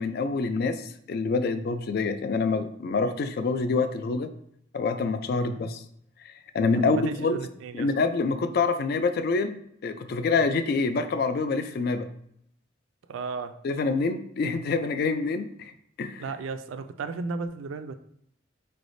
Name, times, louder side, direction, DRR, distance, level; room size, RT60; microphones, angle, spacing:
voice 1, 0.0-4.3 4.7-5.8 6.2-7.4 7.7-12.1 13.6-15.7 16.0-16.2, left 4 dB, 50° left, 10 dB, 0.3 m, -26 dB
voice 2, 6.8-7.9 13.1-13.6 16.2-17.9, right 4 dB, 85° right, 10 dB, 0.4 m, -35 dB
4.8 x 3.3 x 2.6 m, 0.71 s
head